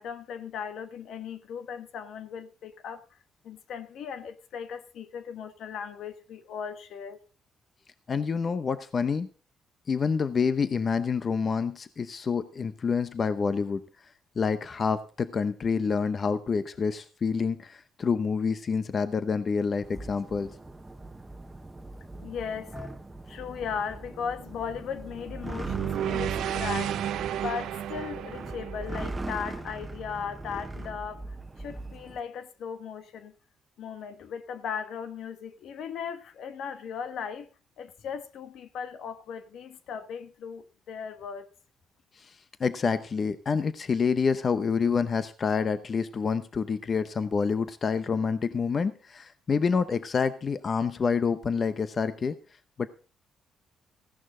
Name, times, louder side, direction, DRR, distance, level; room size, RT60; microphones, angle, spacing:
voice 1, 0.0-3.0 3.4-7.2 22.2-22.7 23.3-26.9 27.4-33.3 33.8-37.5 37.8-41.5, left 7 dB, 75° left, 1.2 m, -37 dB
voice 2, 8.1-9.3 9.9-13.8 14.4-20.5 22.7-22.9 42.2-52.3 52.8-52.9, left 5 dB, 45° left, 0.8 m, -27 dB
sound 1, 19.8-32.2, right 2 dB, 15° right, 1.2 m, -40 dB
sound 2, 25.7-29.9, right 11 dB, 80° right, 0.7 m, -32 dB
15.5 x 11.0 x 3.8 m
cardioid pair, 90°, 0 cm